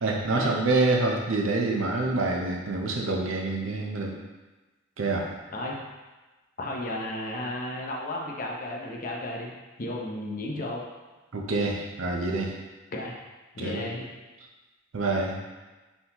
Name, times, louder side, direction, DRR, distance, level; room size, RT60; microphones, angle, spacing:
voice 1, 0.0-4.1 5.0-5.3 11.3-12.5 13.6-13.8 14.9-15.4, right 3 dB, 80° right, 0 dB, 0.6 m, -26 dB
voice 2, 6.6-9.5 9.8-10.8 12.9-13.1 13.5-14.1, left 1 dB, 45° left, -1 dB, 0.7 m, -33 dB
4.0 x 3.9 x 2.9 m, 1.2 s
head